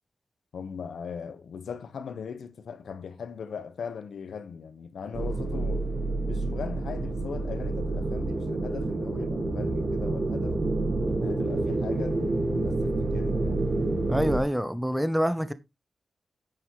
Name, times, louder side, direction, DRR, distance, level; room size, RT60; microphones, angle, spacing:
voice 1, 0.5-5.9 6.3-10.6 11.2-13.6, left 6 dB, 85° left, 1.3 m, -39 dB
sound 1, 5.1-14.4, right 2 dB, 40° right, 2.0 m, -28 dB
voice 2, 14.1-15.5, equal, ahead, 0.7 m, -26 dB
9.8 x 9.3 x 3.1 m
wide cardioid pair, 175°, 0 cm